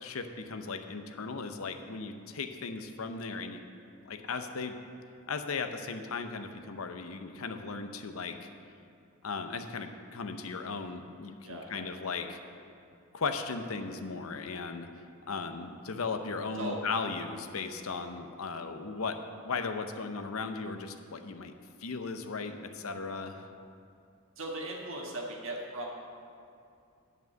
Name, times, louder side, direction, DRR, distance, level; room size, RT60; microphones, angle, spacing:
voice 1, 0.0-3.6 4.1-4.7 5.3-8.5 9.2-12.4 13.1-14.9 15.3-19.2 19.4-21.5 21.8-23.5, left 4 dB, 80° left, 7 dB, 0.7 m, -37 dB
voice 2, 11.4-11.8 16.6-16.8 24.4-26.1, right 1 dB, 60° right, -2 dB, 1.6 m, -38 dB
9.4 x 5.4 x 7.6 m, 2.5 s
head